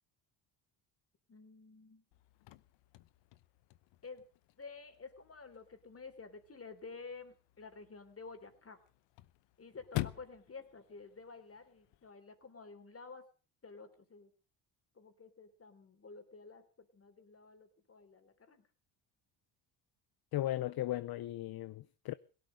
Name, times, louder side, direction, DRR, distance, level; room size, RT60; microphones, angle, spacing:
voice 1, 1.3-2.0 4.0-4.3 4.6-8.8 9.6-13.2 13.6-14.3 14.9-18.7, left 4 dB, 30° left, 3.6 m, -51 dB
Chirp tweet / Car / Slam, 2.1-12.1, left 18 dB, 80° left, 0.9 m, -48 dB
voice 2, 20.3-22.1, left 14 dB, 55° left, 0.7 m, -36 dB
17.5 x 12.5 x 6.5 m
cardioid pair, 85°, 43 cm